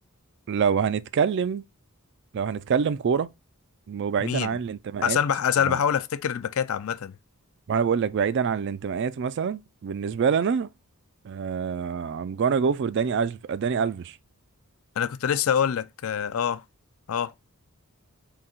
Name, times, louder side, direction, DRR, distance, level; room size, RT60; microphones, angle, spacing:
voice 1, 0.5-1.6 2.3-3.3 3.9-5.2 5.6-5.8 7.7-10.7 11.2-14.2, right 6 dB, 50° right, 0.3 m, -26 dB
voice 2, 4.2-4.5 5.0-7.1 15.0-16.6 17.1-17.3, left 8 dB, 70° left, 0.4 m, -25 dB
3.8 x 2.8 x 4.2 m
head